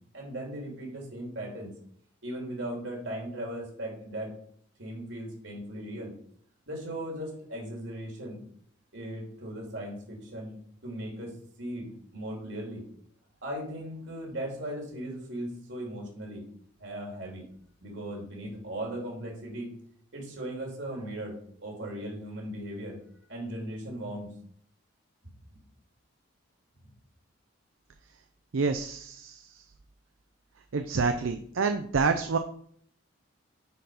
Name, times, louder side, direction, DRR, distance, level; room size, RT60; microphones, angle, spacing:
voice 1, 0.1-1.7 2.2-4.3 4.8-6.1 6.7-8.4 8.9-10.6 10.8-12.8 13.4-16.4 16.8-17.5 17.8-19.7 20.1-21.3 21.6-23.0 23.3-24.3, right 1 dB, 70° right, -1 dB, 3.3 m, -38 dB
voice 2, 28.5-29.5 30.7-32.4, right 4 dB, 85° right, 7 dB, 0.6 m, -28 dB
9.4 x 4.7 x 5.0 m, 0.63 s
head